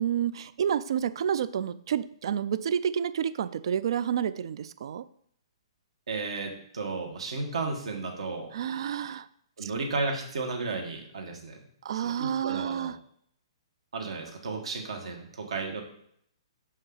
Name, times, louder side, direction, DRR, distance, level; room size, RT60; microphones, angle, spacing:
voice 1, 0.0-5.1 8.5-9.3 9.6-9.7 11.8-12.9, right 9 dB, 60° right, 15 dB, 0.4 m, -29 dB
voice 2, 6.1-8.5 9.6-11.6 11.9-12.9 13.9-15.8, right 3 dB, 80° right, 2 dB, 1.8 m, -33 dB
6.3 x 5.3 x 4.0 m, 0.67 s
hypercardioid pair, 155°, 3 cm